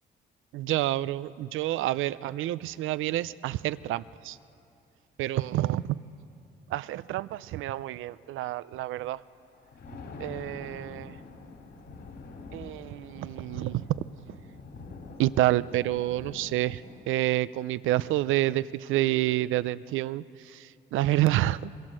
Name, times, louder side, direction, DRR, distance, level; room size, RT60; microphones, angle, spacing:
voice 1, 0.5-4.4 5.2-6.0 6.7-9.2 10.2-11.2 12.5-14.0 15.2-21.7, right 15 dB, 85° right, 17 dB, 0.5 m, -28 dB
Thunder, 9.4-17.2, left 3 dB, 70° left, 4.0 m, -45 dB
25.5 x 22.5 x 7.6 m, 2.7 s
cardioid pair, 90°, 20 cm